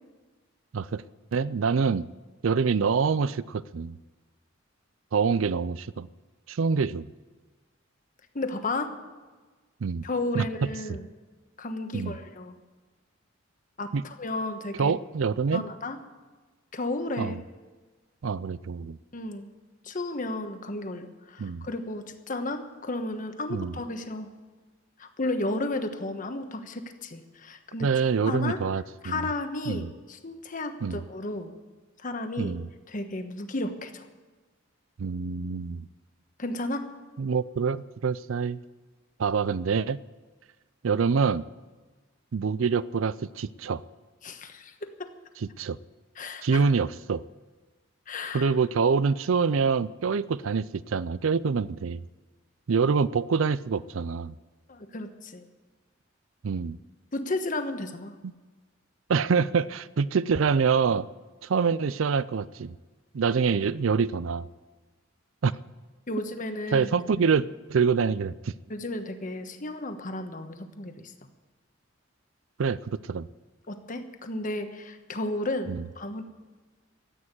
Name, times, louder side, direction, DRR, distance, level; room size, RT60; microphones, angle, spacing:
voice 1, 1.3-2.1 2.4-4.0 5.1-6.1 6.5-7.1 9.8-10.0 10.3-10.5 11.9-12.1 13.9-14.0 14.8-15.6 17.2-17.4 18.2-19.0 21.4-21.7 23.5-23.7 27.8-29.3 29.7-29.9 30.8-31.0 32.4-32.7 35.0-35.9 37.2-38.6 39.2-40.0 40.8-41.4 42.3-43.8 45.6-45.8 46.4-47.2 48.3-52.0 52.7-54.3 56.4-56.8 58.2-58.3 59.1-61.1 61.4-62.7 63.1-64.5 65.4-65.5 66.7-68.5 72.6-73.3 75.7-75.9, right 5 dB, 80° right, 18 dB, 0.5 m, -26 dB
voice 2, 8.3-8.9 10.0-11.1 11.6-12.6 13.8-14.9 15.5-16.0 16.7-17.3 19.1-19.5 19.8-24.3 25.0-27.9 28.3-28.6 29.0-31.5 32.0-32.6 32.9-34.1 36.4-36.9 44.2-45.1 46.2-46.7 48.1-48.5 54.7-55.4 57.1-58.1 66.1-66.9 67.2-67.3 68.7-71.1 73.7-76.2, left 2 dB, 40° left, 8 dB, 1.2 m, -33 dB
14.0 x 8.8 x 9.7 m, 1.3 s
head